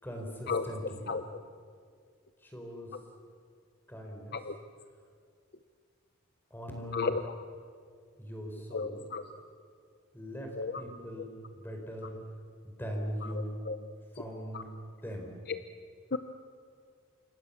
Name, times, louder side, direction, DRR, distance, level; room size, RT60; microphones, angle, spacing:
voice 1, 0.0-1.1 2.4-2.9 3.9-4.4 6.5-7.1 8.2-9.0 10.1-10.5 10.8-12.2 12.6-13.6 14.1-14.7 15.0-15.3, equal, 10° left, 2 dB, 4.7 m, -40 dB
voice 2, 6.9-7.3 8.7-9.2 10.6-10.8 13.2-13.3 13.6-13.8 14.5-14.6 15.5-15.6 16.1-16.2, left 4 dB, 45° left, 9 dB, 0.7 m, -33 dB
29.0 x 26.5 x 7.1 m, 2.2 s
head